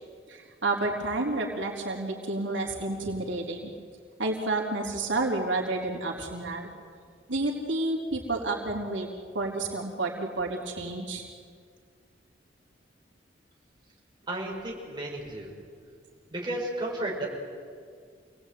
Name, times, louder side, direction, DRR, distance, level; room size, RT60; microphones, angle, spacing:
voice 1, 0.3-3.7 4.2-6.7 7.3-9.1 9.3-11.2, right 2 dB, 80° right, -1 dB, 4.0 m, -30 dB
voice 2, 14.3-15.5 16.3-17.3, right 1 dB, 25° right, -3 dB, 6.6 m, -33 dB
28.0 x 19.5 x 9.5 m, 2.1 s
head